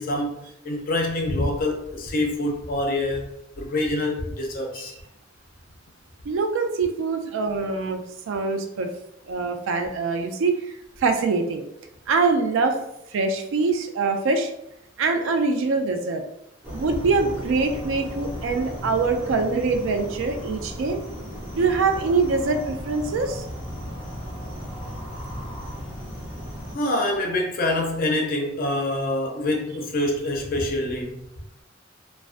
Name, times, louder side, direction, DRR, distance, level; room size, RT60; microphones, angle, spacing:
voice 1, 0.0-3.3 3.6-4.9 26.7-31.3, left 1 dB, 45° left, 2 dB, 0.4 m, -26 dB
voice 2, 6.3-8.9 9.3-10.7 11.0-11.6 12.1-12.8 13.1-14.5 15.0-16.2 16.7-21.0 21.5-23.4, right 4 dB, 80° right, 6 dB, 0.3 m, -24 dB
sound 1, 16.6-26.7, equal, 10° right, 0.7 m, -35 dB
2.4 x 2.1 x 2.4 m, 0.80 s
head